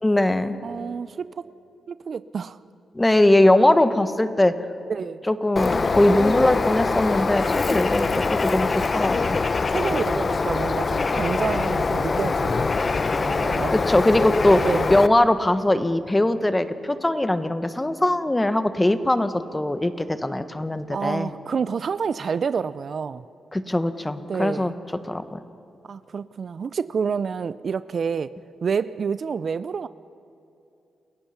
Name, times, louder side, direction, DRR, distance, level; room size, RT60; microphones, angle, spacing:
voice 1, 0.0-0.6 2.9-4.5 5.3-9.4 13.9-14.6 14.9-21.3 23.5-24.7 25.0-25.4, left 1 dB, 15° left, 10 dB, 1.3 m, -21 dB
voice 2, 0.6-1.5 1.9-2.6 4.9-5.2 9.7-13.7 14.6-14.9 20.9-23.3 24.3-24.7 25.9-28.3 28.6-29.9, right 6 dB, 60° right, 15 dB, 0.5 m, -28 dB
Bird, 5.6-15.1, left 4 dB, 45° left, 0.7 m, -23 dB
29.0 x 15.5 x 5.9 m, 2.7 s
cardioid pair, 55°, 0 cm